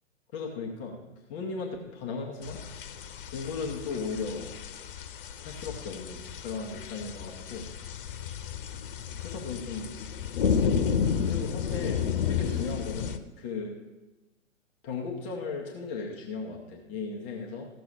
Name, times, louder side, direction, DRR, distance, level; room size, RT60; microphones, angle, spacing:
voice 1, 0.3-1.0 1.3-2.6 3.3-4.6 5.4-7.7 9.2-10.0 10.3-13.8 14.8-17.7, left 4 dB, 10° left, -1 dB, 0.4 m, -36 dB
sound 1, 2.4-13.2, left 7 dB, 40° left, 0.8 m, -32 dB
14.0 x 6.1 x 6.6 m, 1.1 s
figure-of-eight pair, 120°, 40 cm